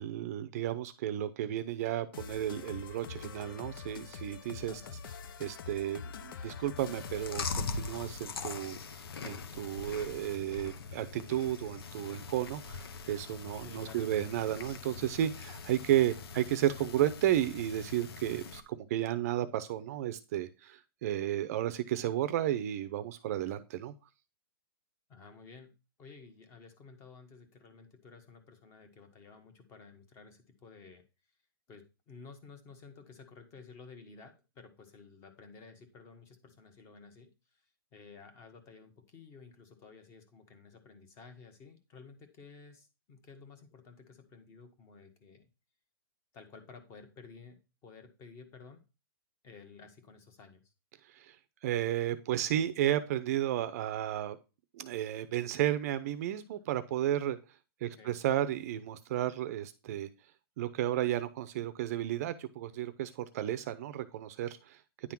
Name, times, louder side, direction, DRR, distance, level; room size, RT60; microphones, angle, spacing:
voice 1, 0.0-4.8 5.4-8.8 9.2-23.9 51.1-51.4 51.6-54.4 54.7-57.4 57.8-60.1 60.6-64.8, right 12 dB, 40° right, 12 dB, 0.6 m, -33 dB
sound 1, 2.1-8.4, left 6 dB, 65° left, 0.7 m, -45 dB
voice 2, 4.7-5.0 13.6-14.1 25.1-25.7 26.0-31.0 31.7-45.5 46.3-48.8 49.4-50.6 58.0-58.2, left 4 dB, 20° left, 8 dB, 1.4 m, -53 dB
Chewing mastication, 6.8-18.6, left 5 dB, 80° left, 1.1 m, -42 dB
9.9 x 3.7 x 5.9 m, 0.30 s
hypercardioid pair, 165°, 12 cm